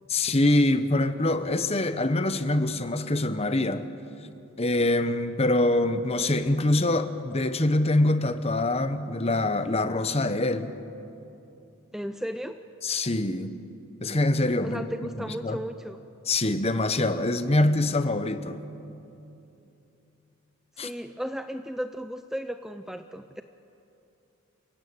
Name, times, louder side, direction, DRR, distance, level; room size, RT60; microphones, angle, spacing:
voice 1, 0.1-3.8 4.6-10.7 12.8-13.5 14.0-14.8 15.4-15.6 16.3-18.6 20.8-20.9, left 2 dB, 30° left, 10 dB, 1.0 m, -24 dB
voice 2, 11.9-12.6 14.6-16.0 20.8-23.4, equal, ahead, 9 dB, 0.5 m, -35 dB
29.5 x 16.5 x 8.8 m, 2.8 s
head